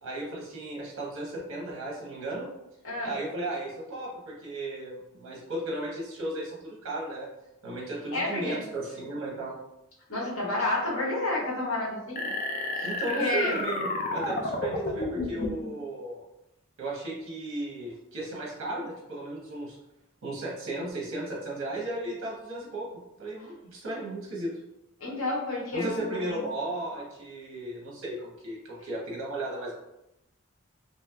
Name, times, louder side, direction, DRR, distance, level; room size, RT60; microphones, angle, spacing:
voice 1, 0.0-2.5 3.0-7.3 7.6-9.6 12.8-16.2 16.8-19.8 20.2-22.9 23.2-24.6 25.7-29.7, right 1 dB, 80° right, -4 dB, 0.9 m, -35 dB
voice 2, 2.8-3.2 8.1-8.6 10.1-12.3 12.7-13.6 25.0-26.4, left 2 dB, 80° left, -4 dB, 1.0 m, -30 dB
sound 1, 12.2-15.7, left 2 dB, 40° left, 0.4 m, -31 dB
3.2 x 2.7 x 2.3 m, 0.89 s
head